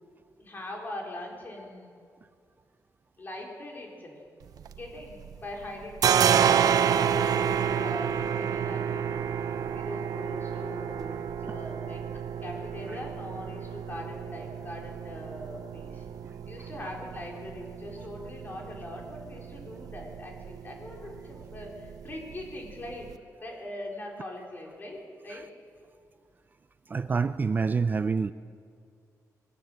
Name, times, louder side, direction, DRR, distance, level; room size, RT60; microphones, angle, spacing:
voice 1, 0.4-1.9 3.2-4.2 4.7-9.2 9.5-12.0 12.4-16.1 16.5-23.1 23.4-25.4, left 1 dB, 30° left, -1 dB, 4.4 m, -41 dB
sound 1, 4.4-5.4 5.6-23.1, right 8 dB, 85° right, 0.7 m, -30 dB
voice 2, 26.9-28.3, right 5 dB, 30° right, 12 dB, 0.4 m, -27 dB
21.5 x 16.5 x 8.0 m, 2.3 s
wide cardioid pair, 150°, 6 cm